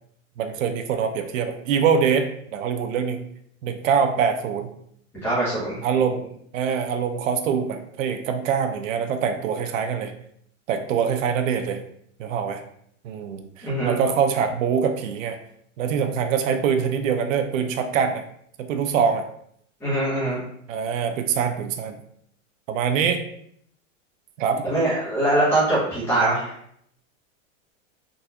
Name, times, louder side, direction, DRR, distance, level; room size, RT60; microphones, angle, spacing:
voice 1, 0.4-3.2 3.6-4.7 5.8-6.2 6.5-10.1 10.7-11.8 12.2-12.6 13.0-15.4 15.8-18.2 18.7-19.2 20.7-22.0 22.7-23.2 24.4-24.6, right 7 dB, 75° right, 6 dB, 0.6 m, -24 dB
voice 2, 5.2-5.8 13.6-13.9 19.8-20.4 24.6-26.5, right 1 dB, 5° left, -9 dB, 0.8 m, -22 dB
3.8 x 2.3 x 2.7 m, 0.68 s
supercardioid pair, 180°, 39 cm